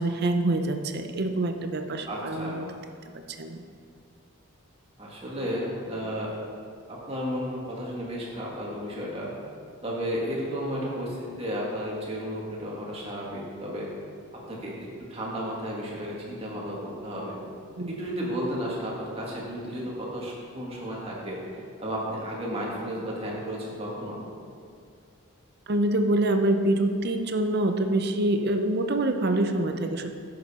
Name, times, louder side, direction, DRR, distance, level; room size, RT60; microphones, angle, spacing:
voice 1, 0.0-2.6 3.4-3.6 17.8-17.9 25.7-30.1, right 1 dB, 45° right, 6 dB, 0.6 m, -25 dB
voice 2, 2.1-2.6 5.0-6.3 6.9-9.3 9.8-13.9 14.3-17.4 17.9-24.2, equal, 25° right, -4 dB, 1.7 m, -33 dB
10.5 x 6.7 x 4.2 m, 2.4 s
head